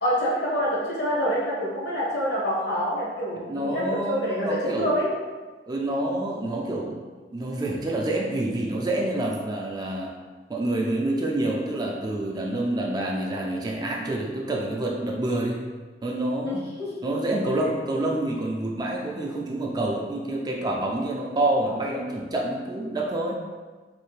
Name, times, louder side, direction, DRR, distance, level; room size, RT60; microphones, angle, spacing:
voice 1, 0.0-5.1 16.4-16.9 17.5-17.7, equal, 70° left, -6 dB, 1.2 m, -26 dB
voice 2, 3.5-4.9 5.7-7.0 7.3-10.1 10.5-15.6 16.0-16.6 17.0-23.4, right 1 dB, 25° right, -1 dB, 0.3 m, -27 dB
3.3 x 2.5 x 3.2 m, 1.4 s
head